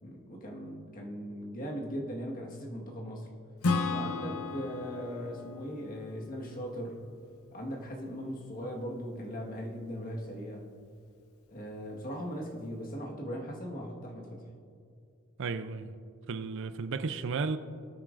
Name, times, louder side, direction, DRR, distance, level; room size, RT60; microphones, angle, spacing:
voice 1, 0.0-3.3 3.9-7.0 7.5-10.7 11.5-14.4, equal, 40° left, 1.5 m, -39 dB
Acoustic guitar / Strum, 3.6-7.2, left 3 dB, 75° left, 0.7 m, -34 dB
voice 2, 15.4-15.9 16.3-17.6, right 4 dB, 55° right, 0.5 m, -33 dB
20.5 x 8.9 x 2.5 m
head